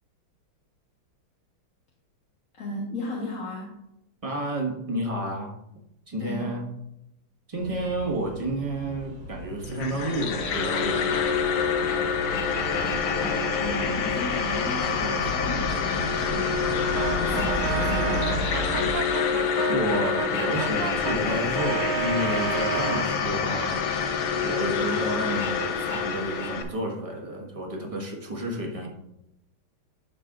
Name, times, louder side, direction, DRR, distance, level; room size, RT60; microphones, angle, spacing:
voice 1, 2.5-3.8 6.2-6.6 13.1-16.7 17.0-18.4, left 2 dB, 45° left, -4 dB, 1.5 m, -35 dB
voice 2, 4.2-5.5 6.1-6.6 7.5-11.3 11.5-11.7 19.7-28.9, right 1 dB, 20° right, -1 dB, 1.2 m, -31 dB
sound 1, 7.6-18.9, equal, 50° right, 1.9 m, -34 dB
sound 2, 9.6-26.6, left 6 dB, 90° left, 1.7 m, -27 dB
Brass instrument, 16.9-23.1, right 9 dB, 75° right, 1.0 m, -32 dB
10.5 x 6.9 x 2.4 m, 0.83 s
omnidirectional pair, 2.3 m